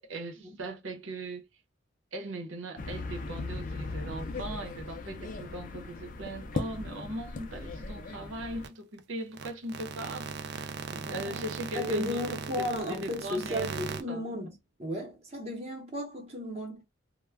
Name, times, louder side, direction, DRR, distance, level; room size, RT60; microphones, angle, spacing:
voice 1, 0.1-1.4 2.1-14.2, right 1 dB, 85° right, 0.8 m, -39 dB
sound 1, 2.8-8.7, left 3 dB, 45° left, 0.4 m, -38 dB
sound 2, 8.6-8.7 9.0-9.1 9.3-14.0, right 5 dB, 55° right, 0.3 m, -39 dB
voice 2, 10.9-11.5 11.7-16.8, equal, 30° right, 0.8 m, -35 dB
2.2 x 2.1 x 3.3 m
head